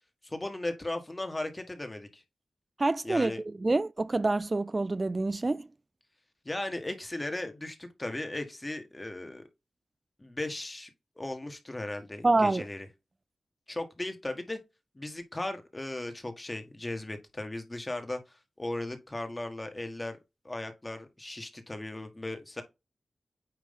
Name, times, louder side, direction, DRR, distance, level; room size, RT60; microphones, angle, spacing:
voice 1, 0.2-2.2 3.0-3.4 6.4-9.4 10.2-10.9 11.2-12.9 13.7-14.6 14.9-20.2 20.4-22.6, left 1 dB, 25° left, 1.5 m, -37 dB
voice 2, 2.8-5.6 12.2-12.6, right 2 dB, 40° right, 0.3 m, -27 dB
9.1 x 3.1 x 3.6 m
cardioid pair, 45°, 0 cm